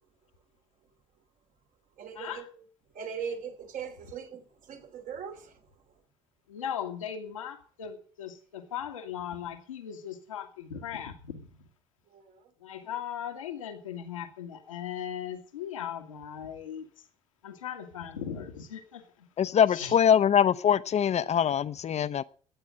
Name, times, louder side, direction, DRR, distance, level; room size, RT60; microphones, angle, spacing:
voice 1, 2.0-2.6 2.9-5.6 12.1-12.4, right 7 dB, 55° right, 3.1 m, -40 dB
voice 2, 6.5-11.5 12.6-16.9 17.4-19.3 19.7-19.9, left 9 dB, 85° left, 1.8 m, -38 dB
voice 3, 19.4-22.2, left 8 dB, 40° left, 0.9 m, -23 dB
13.5 x 9.2 x 7.6 m
hypercardioid pair, 55°, 17 cm